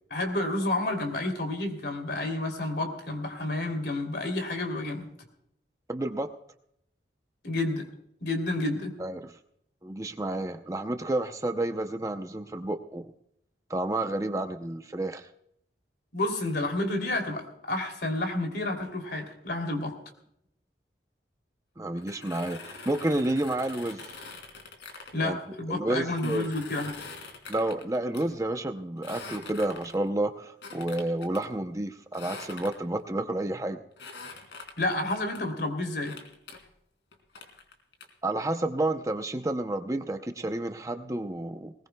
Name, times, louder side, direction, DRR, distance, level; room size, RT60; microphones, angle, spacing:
voice 1, 0.1-5.1 7.4-7.9 8.2-8.9 16.1-19.9 25.1-27.1 34.8-36.2, left 2 dB, 60° left, 5 dB, 3.0 m, -30 dB
voice 2, 5.9-6.3 9.0-9.3 9.8-13.1 13.7-15.3 21.8-24.0 25.2-26.5 27.5-33.8 38.2-41.7, right 1 dB, 20° right, 6 dB, 0.6 m, -30 dB
sound 1, 22.0-25.1 26.1-28.3 29.0-30.1 30.6-31.4 32.1-33.0 34.0-35.4 36.0-36.6 37.1-38.1, left 4 dB, 80° left, 3.1 m, -44 dB
20.0 x 20.0 x 2.3 m, 0.73 s
head